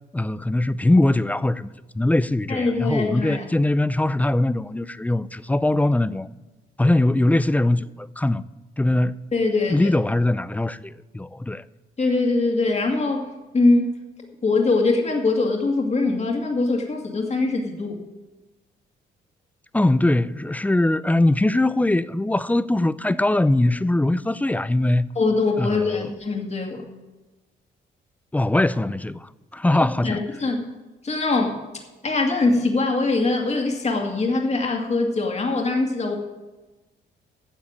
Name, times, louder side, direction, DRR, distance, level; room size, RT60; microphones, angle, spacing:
voice 1, 0.1-6.3 6.8-8.4 8.8-9.2 9.7-11.6 19.7-25.1 25.6-26.0 28.3-30.2, left 1 dB, 10° left, 0.4 m, -21 dB
voice 2, 2.5-3.4 9.3-9.9 12.0-14.0 14.4-18.0 25.2-26.8 30.0-30.7 31.0-31.6 32.0-36.1, left 3 dB, 35° left, 2.3 m, -22 dB
10.0 x 7.4 x 8.8 m
cardioid pair, 90°, 20 cm